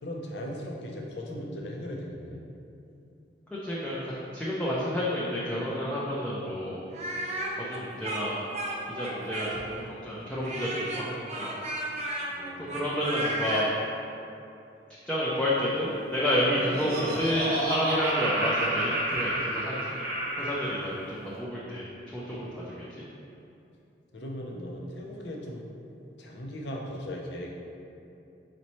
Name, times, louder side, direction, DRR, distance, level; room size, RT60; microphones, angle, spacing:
voice 1, 0.0-2.4 12.3-12.9 20.9-21.3 24.1-25.6 26.2-27.5, equal, 70° left, -1 dB, 0.7 m, -38 dB
voice 2, 3.5-6.8 7.6-8.4 8.9-11.6 12.6-13.7 15.1-19.7 20.4-22.8, equal, 5° left, -8 dB, 0.5 m, -30 dB
Speech, 6.9-9.8 10.4-13.7, right 1 dB, 40° right, 0.6 m, -34 dB
Laughter, 16.3-20.8, right 1 dB, 60° right, 0.9 m, -30 dB
4.3 x 4.0 x 3.1 m, 2.7 s
head